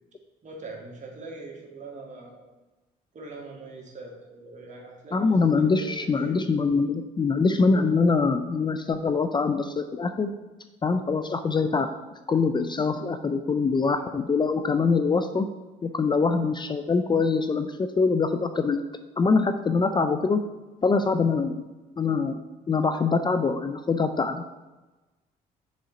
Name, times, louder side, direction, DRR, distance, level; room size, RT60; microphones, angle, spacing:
voice 1, 0.4-2.4 3.1-5.2 5.6-6.4, right 3 dB, 45° right, 0 dB, 1.7 m, -42 dB
voice 2, 5.1-10.3 10.8-11.9 12.3-15.5 15.8-18.8 19.2-20.4 20.8-21.6 22.0-22.4 22.7-24.4, left 4 dB, 25° left, 8 dB, 0.4 m, -24 dB
6.3 x 4.1 x 3.8 m, 1.1 s
supercardioid pair, 75°, 17 cm